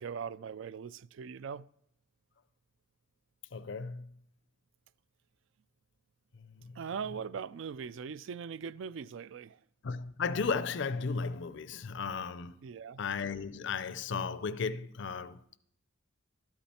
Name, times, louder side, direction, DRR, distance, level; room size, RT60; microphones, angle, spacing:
voice 1, 0.0-1.7 6.7-9.6 12.6-13.0, right 6 dB, 65° right, 0.3 m, -40 dB
voice 2, 3.5-4.1 6.3-6.8 9.8-12.6 13.0-15.6, left 5 dB, 60° left, 0.5 m, -35 dB
12.5 x 8.7 x 4.3 m
head